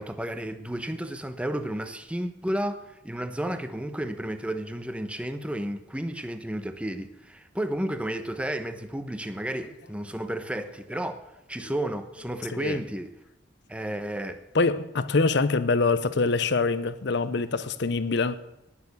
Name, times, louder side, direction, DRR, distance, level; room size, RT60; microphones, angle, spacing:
voice 1, 0.0-13.1 13.7-14.4, right 1 dB, 5° right, 0.9 m, -32 dB
voice 2, 14.5-18.4, left 3 dB, 60° left, 0.7 m, -24 dB
19.0 x 7.0 x 6.8 m
head